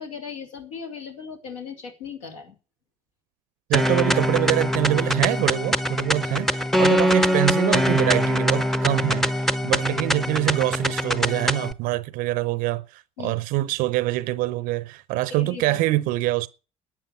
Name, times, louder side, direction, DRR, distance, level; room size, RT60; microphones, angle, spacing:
voice 1, 0.0-2.6 13.2-13.4 15.3-15.8, left 5 dB, 70° left, 3.2 m, -37 dB
sound 1, 3.7-11.7, equal, ahead, 0.8 m, -23 dB
voice 2, 3.7-16.5, right 18 dB, 55° right, 0.6 m, -25 dB
12.0 x 9.1 x 8.5 m
figure-of-eight pair, 60°, 17 cm